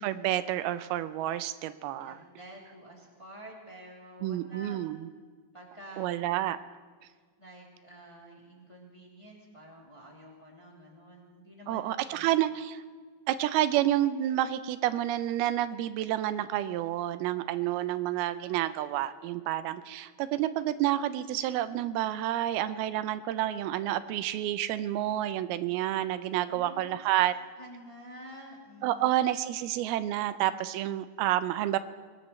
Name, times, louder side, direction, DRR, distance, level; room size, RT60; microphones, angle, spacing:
voice 1, 0.0-2.2 4.2-5.1 6.0-6.6 11.7-12.8 13.3-27.3 28.8-31.8, right 13 dB, 85° right, 13 dB, 2.6 m, -29 dB
voice 2, 2.0-4.8 5.5-6.1 7.1-12.3 26.4-27.0 27.6-29.1, equal, 10° left, -3 dB, 2.2 m, -49 dB
23.0 x 19.5 x 3.2 m, 1.5 s
omnidirectional pair, 4.3 m